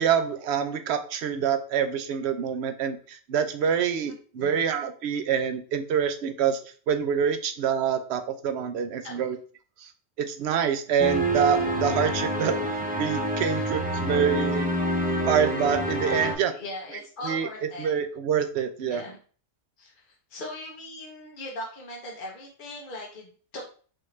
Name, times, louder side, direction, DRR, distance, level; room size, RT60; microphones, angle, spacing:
voice 1, 0.0-6.6 6.9-9.4 9.8-9.9 10.2-12.5 13.0-14.7 15.3-16.5 17.2-17.5 17.8-19.0, right 7 dB, 70° right, 8 dB, 0.8 m, -26 dB
voice 2, 4.0-4.6 9.0-9.3 13.5-13.7 16.2-17.9 18.9-19.2 19.8-23.7, left 1 dB, 50° left, -2 dB, 1.0 m, -40 dB
sound 1, 11.0-16.3, right 1 dB, 15° right, 0.3 m, -27 dB
5.7 x 2.6 x 3.2 m, 0.42 s
omnidirectional pair, 1.2 m